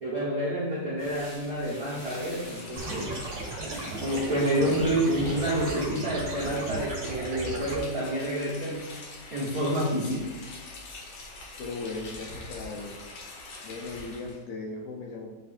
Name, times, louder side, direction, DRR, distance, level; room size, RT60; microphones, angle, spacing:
voice 1, 0.0-3.2 4.0-8.9 9.3-10.3, right 1 dB, 80° right, -8 dB, 0.8 m, -28 dB
sound 1, 1.0-12.6, equal, 40° left, 0.6 m, -48 dB
Rain, 1.8-14.4, left 3 dB, 60° left, 1.7 m, -44 dB
sound 2, 2.8-7.8, right 2 dB, 55° right, 1.7 m, -36 dB
voice 2, 11.6-13.0 13.6-15.3, left 3 dB, 75° left, 0 dB, 1.8 m, -37 dB
9.0 x 3.4 x 4.2 m, 1.2 s
omnidirectional pair, 4.1 m